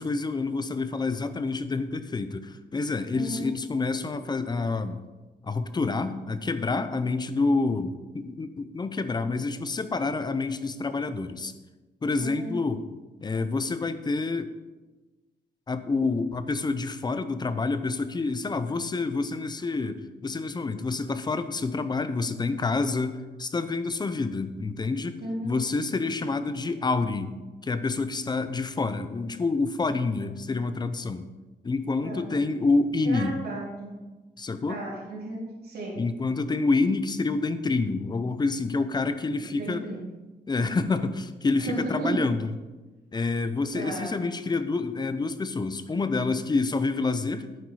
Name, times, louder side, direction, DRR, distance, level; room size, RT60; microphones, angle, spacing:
voice 1, 0.0-5.0 5.4-11.5 12.0-12.8 13.2-14.5 15.7-25.1 25.4-27.3 27.6-31.3 31.6-33.3 34.4-34.8 36.0-39.8 40.5-42.5 43.1-47.5, left 3 dB, 25° left, 11 dB, 0.6 m, -28 dB
voice 2, 3.1-3.5 12.2-12.5 25.2-25.6 32.0-32.3 33.0-34.0 34.7-36.0 39.4-40.0 41.6-42.2 43.7-44.1, right 2 dB, 60° right, -4 dB, 3.5 m, -34 dB
11.0 x 8.9 x 4.9 m, 1.2 s
wide cardioid pair, 165°, 18 cm